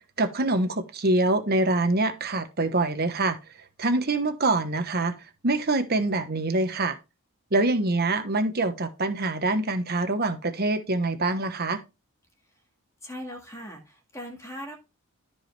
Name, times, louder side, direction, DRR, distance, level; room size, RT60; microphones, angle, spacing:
voice 1, 0.2-3.4 3.8-5.2 5.4-7.0 7.5-11.8, right 2 dB, 45° right, 1.2 m, -25 dB
voice 2, 13.0-14.8, equal, 15° left, 1.8 m, -39 dB
13.5 x 4.9 x 3.3 m
head